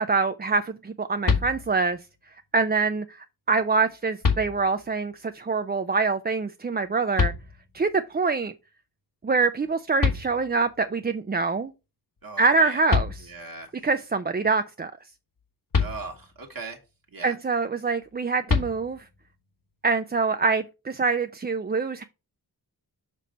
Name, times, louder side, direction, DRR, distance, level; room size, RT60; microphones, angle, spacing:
voice 1, 0.0-2.0 2.5-7.3 7.7-8.5 9.2-11.7 12.4-13.3 13.8-14.9 17.2-19.0 19.8-22.0, right 4 dB, 25° right, 0.4 m, -25 dB
sound 1, 1.2-2.0 3.5-3.6 4.2-5.0 7.2-7.9 9.7-9.8 10.0-10.8 12.5-12.6 12.9-13.7 15.7-16.5 18.5-19.3, left 5 dB, 55° left, 1.4 m, -27 dB
voice 2, 12.2-12.8 13.2-13.7 15.8-16.8 17.1-17.4, right 4 dB, 60° right, 1.4 m, -39 dB
6.7 x 3.2 x 5.1 m
wide cardioid pair, 60°, 40 cm